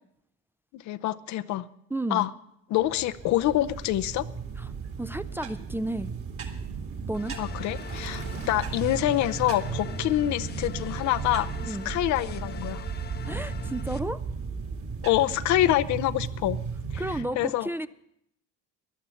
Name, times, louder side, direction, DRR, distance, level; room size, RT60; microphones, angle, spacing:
voice 1, 0.7-1.7 2.1-2.3 2.7-4.2 7.4-12.8 15.0-16.6 16.9-17.0 17.4-17.7, left 14 dB, 60° left, 14 dB, 0.7 m, -26 dB
voice 2, 1.9-2.2 4.6-4.7 5.0-6.1 7.1-7.4 11.6-11.9 13.3-14.2 17.0-17.9, right 1 dB, 5° right, 12 dB, 0.6 m, -32 dB
sound 1, 2.8-17.2, right 5 dB, 45° right, 2.4 m, -35 dB
sound 2, 7.1-14.0, left 7 dB, 30° left, 0.9 m, -42 dB
13.5 x 11.0 x 7.0 m, 0.74 s
hypercardioid pair, 70°, 32 cm